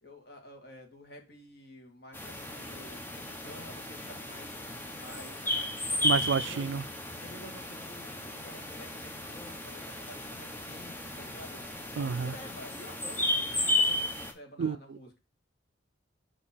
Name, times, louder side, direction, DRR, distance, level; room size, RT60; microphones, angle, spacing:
voice 1, 0.0-4.6 4.9-6.7 7.2-11.6 11.9-15.2, left 1 dB, 55° left, 1.4 m, -50 dB
sound 1, 2.1-14.3, left 2 dB, 10° left, 0.7 m, -34 dB
voice 2, 6.0-6.8 12.0-12.3 14.6-14.8, right 6 dB, 70° right, 0.3 m, -29 dB
6.4 x 2.9 x 5.5 m
head